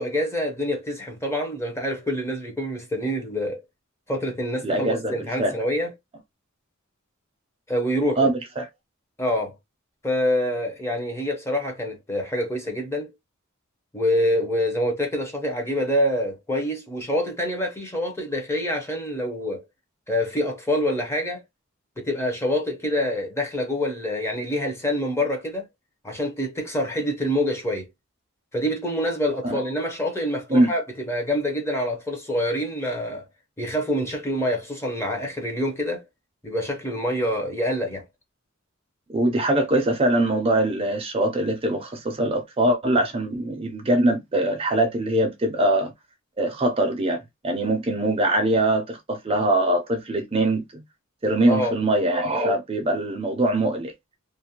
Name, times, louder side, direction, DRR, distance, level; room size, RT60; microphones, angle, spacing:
voice 1, 0.0-3.6 4.1-5.9 7.7-8.3 9.2-9.5 10.0-13.1 13.9-19.6 20.1-21.4 22.0-25.6 26.0-27.9 28.5-33.3 33.6-36.0 36.4-38.0 51.5-51.7, equal, 15° left, 0.7 m, -26 dB
voice 2, 4.6-5.5 8.2-8.6 29.4-29.6 30.5-30.7 39.1-45.9 46.4-50.8 51.2-53.9, right 1 dB, 30° right, 0.5 m, -22 dB
2.5 x 2.1 x 2.7 m
head